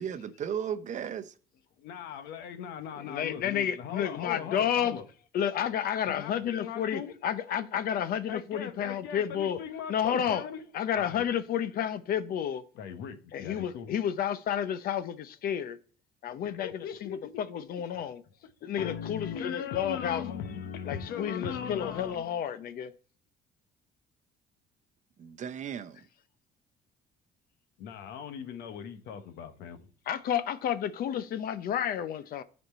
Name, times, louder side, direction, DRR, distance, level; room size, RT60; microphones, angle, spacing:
voice 1, 0.0-1.3 25.2-26.0, right 8 dB, 45° right, 0.7 m, -35 dB
voice 2, 1.8-5.0 6.1-7.1 8.3-10.6 10.9-11.2 12.7-13.9 16.4-17.4 17.9-18.1 18.8-22.4 27.8-29.9, left 7 dB, 80° left, 1.0 m, -39 dB
voice 3, 3.0-5.0 5.3-9.6 9.9-10.4 10.7-12.6 13.3-15.8 16.2-18.2 18.6-20.2 20.9-22.9 30.1-32.4, left 9 dB, 60° left, 0.8 m, -31 dB
10.0 x 4.4 x 4.2 m
cardioid pair, 110°, 17 cm